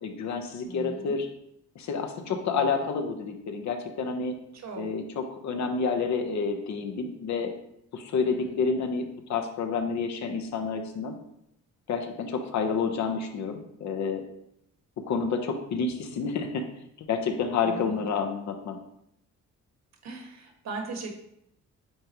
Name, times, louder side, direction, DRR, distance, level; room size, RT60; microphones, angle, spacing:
voice 1, 0.0-1.3 1.7-4.4 4.8-7.5 7.9-11.1 11.9-14.2 15.1-16.6 17.0-18.8, left 5 dB, 65° left, 5 dB, 1.0 m, -29 dB
voice 2, 0.6-1.2 2.3-2.9 4.5-4.9 8.2-8.6 17.6-18.1 20.0-21.2, right 3 dB, 65° right, 3 dB, 1.5 m, -39 dB
8.5 x 3.7 x 3.1 m, 0.76 s
cardioid pair, 90°, 30 cm